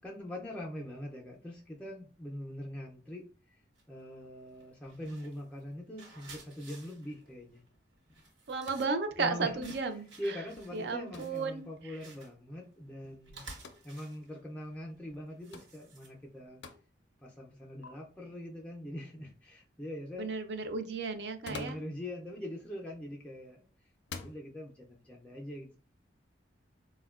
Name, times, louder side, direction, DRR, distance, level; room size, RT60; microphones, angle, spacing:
voice 1, 0.0-3.6 3.9-7.6 9.2-9.7 10.2-13.4 13.8-16.6 17.2-20.3 21.5-23.7 24.1-25.8, left 1 dB, 5° left, -3 dB, 0.4 m, -43 dB
sound 1, 3.8-4.1 4.5-16.4, right 3 dB, 80° right, 1.1 m, -55 dB
voice 2, 8.5-10.4 10.7-12.0 20.2-21.8, right 4 dB, 65° right, 8 dB, 0.4 m, -34 dB
sound 2, 8.6-9.0 11.1-11.4 13.5-13.8 15.5-15.8 16.6-16.8 17.8-17.9 21.2-21.9 23.1-23.4 24.0-24.4, left 5 dB, 70° left, 0.4 m, -46 dB
4.1 x 2.1 x 2.3 m, 0.38 s
head